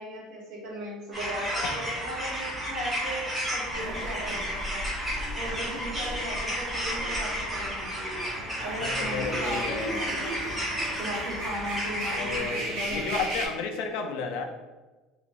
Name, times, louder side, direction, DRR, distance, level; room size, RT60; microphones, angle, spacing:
voice 1, 0.0-4.9 5.3-8.0 8.6-10.6 11.0-13.2, equal, 55° right, -5 dB, 1.3 m, -37 dB
sound 1, 1.1-12.4, equal, 5° right, 0.9 m, -32 dB
sound 2, 3.7-13.5, right 1 dB, 70° right, 0.8 m, -37 dB
voice 2, 8.1-11.0 12.1-14.5, left 5 dB, 65° left, 4 dB, 0.4 m, -34 dB
3.0 x 2.8 x 2.5 m, 1.2 s
cardioid pair, 170°, 0 cm